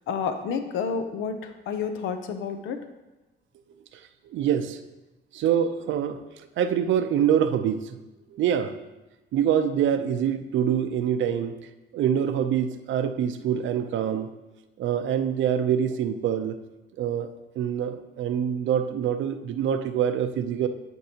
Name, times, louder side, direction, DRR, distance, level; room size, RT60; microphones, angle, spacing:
voice 1, 0.1-2.9, left 6 dB, 85° left, 8 dB, 0.6 m, -30 dB
voice 2, 4.3-4.8 5.3-8.0 8.3-8.8 9.3-11.6 11.9-14.4 14.8-16.6 17.0-20.7, right 9 dB, 75° right, 9 dB, 0.6 m, -25 dB
10.5 x 4.6 x 2.9 m, 1.1 s
cardioid pair, 90°, 20 cm